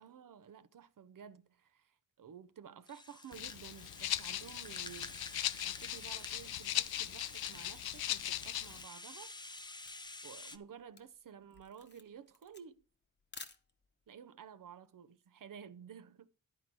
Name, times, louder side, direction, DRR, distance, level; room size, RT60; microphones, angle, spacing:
voice 1, 0.0-9.7 10.2-12.8 14.1-16.3, right 8 dB, 60° right, 0.7 m, -53 dB
Rattle (instrument), 2.9-10.6, left 2 dB, 10° left, 0.6 m, -50 dB
Rattle (instrument) 2, 3.3-8.8, left 12 dB, 85° left, 0.5 m, -39 dB
Camera, 8.3-14.1, left 4 dB, 30° left, 0.9 m, -55 dB
11.0 x 4.5 x 6.0 m
cardioid pair, 80°, 36 cm